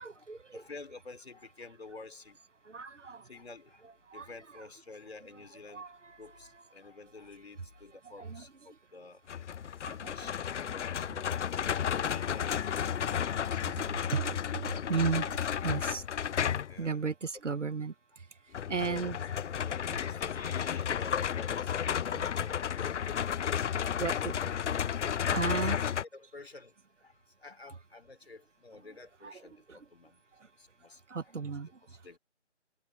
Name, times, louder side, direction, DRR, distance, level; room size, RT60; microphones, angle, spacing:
voice 1, 0.0-0.6 2.6-3.3 4.1-4.7 5.3-5.4 5.7-6.6 8.0-8.8 9.8-10.8 11.1-11.5 13.2-15.2 15.6-16.1 16.8-19.2 23.0-23.2 23.8-24.4 25.3-25.8 28.9-29.9 30.4-30.5 31.1-32.0, right 5 dB, 85° right, 1.6 m, -37 dB
voice 2, 0.5-2.4 3.2-3.9 4.1-5.9 6.2-9.2 9.9-11.3 11.8-12.9 13.5-14.1 14.7-15.2 15.7-15.9 16.6-17.0 18.5-22.6 23.8-24.0 25.2-25.8 26.1-26.8 27.0-30.2 30.6-31.0 31.9-32.2, left 3 dB, 60° left, 4.8 m, -50 dB
sound 1, 9.3-16.8 18.5-26.0, left 8 dB, 75° left, 0.5 m, -32 dB
figure-of-eight pair, 180°, 36 cm